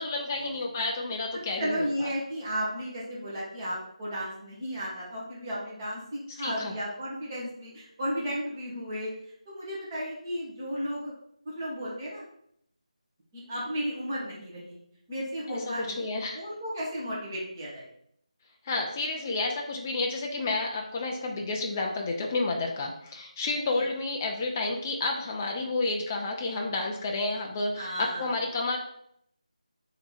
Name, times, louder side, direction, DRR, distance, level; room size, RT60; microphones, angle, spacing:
voice 1, 0.0-2.1 6.3-6.7 15.5-16.4 18.6-28.8, left 3 dB, 20° left, 1 dB, 0.3 m, -30 dB
voice 2, 1.3-9.1 9.4-11.1 11.5-12.2 13.3-14.8 15.1-16.0 16.3-17.9 23.7-23.8 27.7-28.3, equal, 25° right, -7 dB, 1.4 m, -34 dB
3.3 x 3.0 x 4.1 m, 0.71 s
figure-of-eight pair, 165°, 4 cm